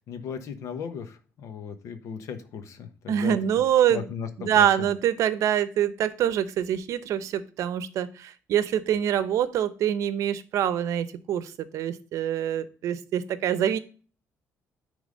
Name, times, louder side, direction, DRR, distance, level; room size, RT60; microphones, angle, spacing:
voice 1, 0.0-3.6 3.9-4.9, left 7 dB, 65° left, 8 dB, 1.1 m, -37 dB
voice 2, 3.1-4.0 4.4-13.8, right 10 dB, 70° right, 14 dB, 0.7 m, -25 dB
10.0 x 3.5 x 5.2 m, 0.39 s
cardioid pair, 145°, 6 cm